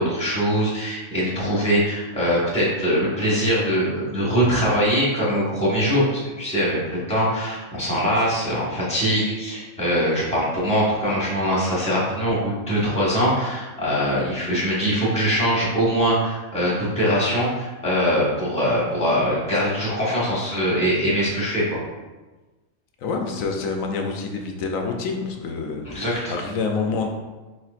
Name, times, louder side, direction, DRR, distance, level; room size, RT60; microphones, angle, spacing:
voice 1, 0.0-6.8 7.1-21.8 25.8-26.3, equal, 5° left, -7 dB, 1.3 m, -22 dB
voice 2, 23.0-27.1, left 4 dB, 75° left, 3 dB, 1.0 m, -27 dB
4.4 x 4.2 x 2.4 m, 1.2 s
omnidirectional pair, 1.4 m